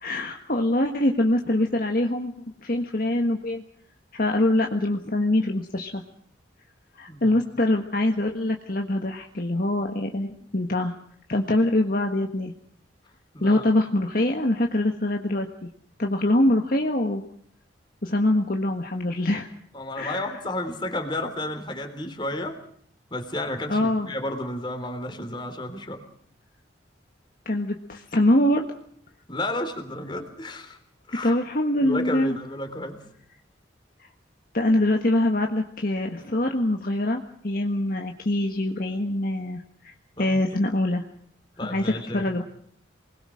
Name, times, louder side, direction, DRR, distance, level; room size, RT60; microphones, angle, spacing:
voice 1, 0.0-2.3 2.6-3.6 4.1-6.0 6.9-11.0 11.3-12.5 13.4-15.7 16.0-17.2 18.0-19.5 20.0-20.2 23.7-24.1 27.4-28.6 31.2-32.3 34.5-41.0 41.6-42.4, left 1 dB, 50° left, 3 dB, 1.6 m, -24 dB
voice 2, 7.1-7.4 13.3-13.6 19.7-22.6 23.1-26.0 29.3-30.8 31.1-31.4 31.8-33.0 40.2-40.4 41.6-42.3, left 1 dB, 25° left, 6 dB, 3.4 m, -32 dB
28.0 x 21.0 x 6.4 m, 0.64 s
head